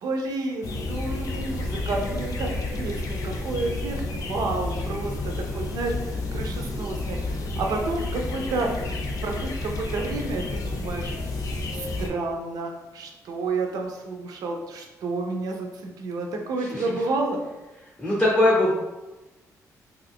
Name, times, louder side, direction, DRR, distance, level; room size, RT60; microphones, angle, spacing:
voice 1, 0.0-8.7 9.1-11.1 11.7-17.4, right 3 dB, 75° right, 2 dB, 0.5 m, -30 dB
sound 1, 0.6-12.1, left 2 dB, 65° left, 0.5 m, -30 dB
voice 2, 18.0-18.7, left 1 dB, 10° left, -7 dB, 0.6 m, -20 dB
2.6 x 2.4 x 3.4 m, 1.1 s
cardioid pair, 135°, 6 cm